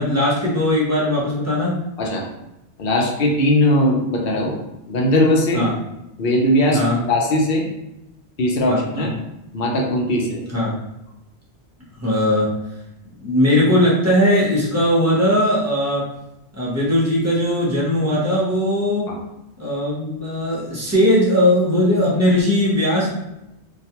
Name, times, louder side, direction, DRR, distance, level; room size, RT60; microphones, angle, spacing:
voice 1, 0.0-1.8 5.5-5.7 6.7-7.0 8.7-9.1 10.5-10.8 12.0-12.5 13.2-16.1 16.5-19.1 19.6-23.1, left 1 dB, 15° right, -6 dB, 0.6 m, -19 dB
voice 2, 2.8-4.6 4.9-5.7 6.2-6.8 7.1-7.7 8.4-9.1 9.5-10.4 19.1-19.2, left 1 dB, 60° left, -1 dB, 0.7 m, -19 dB
2.3 x 2.2 x 2.8 m, 0.88 s
omnidirectional pair, 1.2 m